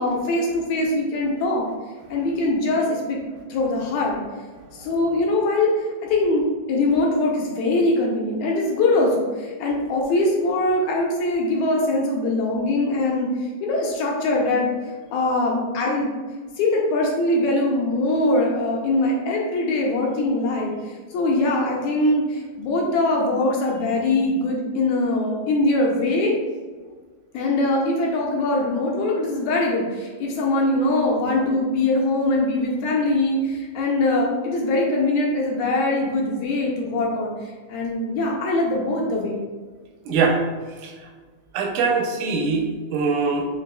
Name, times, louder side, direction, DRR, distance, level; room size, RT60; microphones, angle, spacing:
voice 1, 0.0-1.7 2.1-3.2 3.5-4.2 4.7-13.3 13.6-14.7 15.1-16.1 16.6-26.3 27.3-39.4, left 2 dB, 80° left, -1 dB, 1.8 m, -22 dB
voice 2, 40.1-40.4 40.8-40.9 41.5-43.5, right 4 dB, 85° right, 1 dB, 2.0 m, -22 dB
5.3 x 2.9 x 2.2 m, 1.4 s
omnidirectional pair, 3.5 m